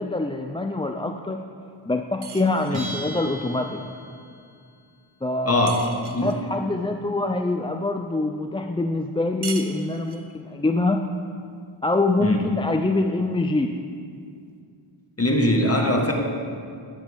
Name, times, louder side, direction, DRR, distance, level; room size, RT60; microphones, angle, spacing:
voice 1, 0.0-1.4 1.9-3.8 5.2-5.7 6.2-11.1 11.8-13.8, left 2 dB, 10° left, 4 dB, 0.3 m, -25 dB
sound 1, 2.2-3.1 5.7-6.4 9.4-10.4, right 5 dB, 50° right, 0.8 m, -39 dB
Bell, 2.7-4.3, right 1 dB, 70° right, 2.9 m, -38 dB
voice 2, 5.4-5.9 6.1-6.4 12.2-12.4 15.2-16.1, left 1 dB, 30° left, 1 dB, 1.3 m, -21 dB
11.5 x 10.5 x 3.5 m, 2.3 s
wide cardioid pair, 55°, 50 cm